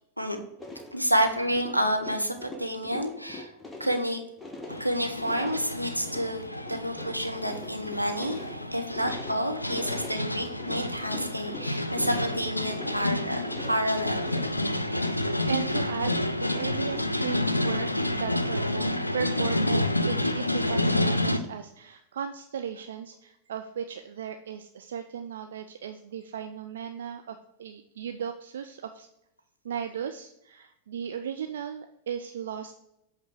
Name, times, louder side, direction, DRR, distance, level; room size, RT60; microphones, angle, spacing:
sound 1, 0.6-17.3, left 2 dB, 10° left, 0.9 m, -44 dB
voice 1, 0.9-3.5 3.8-4.2 4.8-6.4 6.7-8.4 8.7-14.3, equal, 90° right, 4 dB, 0.8 m, -29 dB
sound 2, 4.7-21.4, left 1 dB, 85° left, 0.4 m, -29 dB
voice 2, 14.9-18.9 19.1-29.1 29.6-32.8, right 8 dB, 60° right, 7 dB, 0.4 m, -36 dB
8.1 x 3.4 x 4.9 m, 0.83 s
figure-of-eight pair, 90°, 0 cm